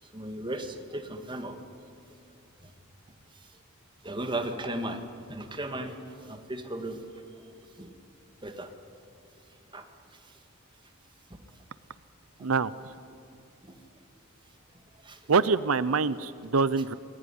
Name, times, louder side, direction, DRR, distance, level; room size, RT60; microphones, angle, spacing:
voice 1, 0.0-1.6 2.6-2.7 3.3-3.6 4.0-5.0 5.3-7.0 7.7-7.9 8.4-8.7 9.7-9.8 10.1-10.4 11.3-11.4 12.4-12.5 13.6-13.8 15.0-15.3, right 1 dB, 25° right, 6 dB, 2.0 m, -36 dB
voice 2, 12.4-12.7 15.3-16.9, right 4 dB, 85° right, 16 dB, 0.7 m, -25 dB
28.0 x 21.0 x 9.9 m, 2.6 s
head